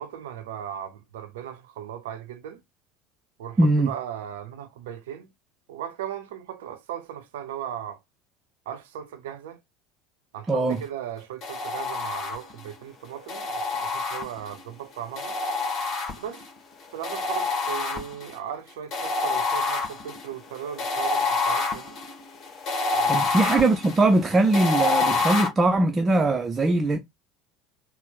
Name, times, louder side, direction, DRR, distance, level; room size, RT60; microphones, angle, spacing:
voice 1, 0.0-2.6 3.4-5.3 5.7-8.0 8.7-9.6 10.3-15.4 16.2-16.4 16.9-22.0 22.9-23.4, right 9 dB, 70° right, 0.6 m, -37 dB
voice 2, 3.6-3.9 10.5-10.8 23.1-27.0, right 2 dB, 20° right, 0.5 m, -21 dB
sound 1, 11.4-12.7 13.3-14.6 15.2-16.5 17.0-18.4 18.9-25.5, left 3 dB, 40° left, 1.4 m, -27 dB
4.2 x 2.0 x 3.6 m
figure-of-eight pair, 70°, 0 cm